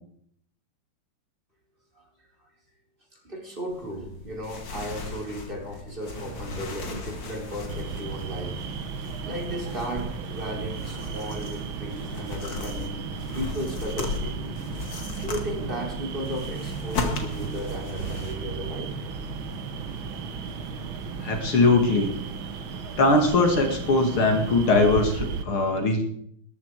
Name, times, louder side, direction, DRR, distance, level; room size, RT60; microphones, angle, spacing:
voice 1, 3.1-8.6 9.0-13.0 13.3-14.6 15.0-18.9, equal, 25° right, 0 dB, 4.4 m, -35 dB
sound 1, 3.7-18.3, left 3 dB, 60° left, 2.7 m, -37 dB
sound 2, 6.0-25.1, right 2 dB, 50° right, 2.8 m, -41 dB
sound 3, 7.7-25.4, right 7 dB, 70° right, 1.9 m, -36 dB
voice 2, 21.2-22.1 23.0-26.0, left 2 dB, 80° left, 4 dB, 3.1 m, -21 dB
19.5 x 13.5 x 4.8 m, 0.66 s
omnidirectional pair, 2.3 m